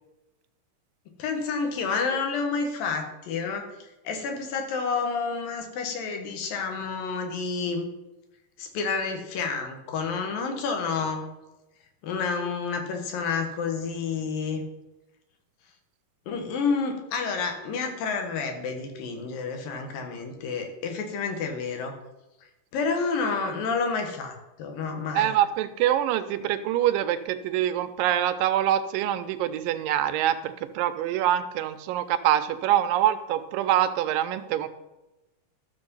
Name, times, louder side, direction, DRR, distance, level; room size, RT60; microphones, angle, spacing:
voice 1, 1.2-3.7 4.0-7.9 8.6-11.3 12.0-14.6 16.3-21.9 22.7-25.3, left 5 dB, 85° left, 4 dB, 3.3 m, -29 dB
voice 2, 25.1-34.7, right 11 dB, 90° right, 10 dB, 2.3 m, -25 dB
12.5 x 7.2 x 5.5 m, 1.0 s
omnidirectional pair, 3.9 m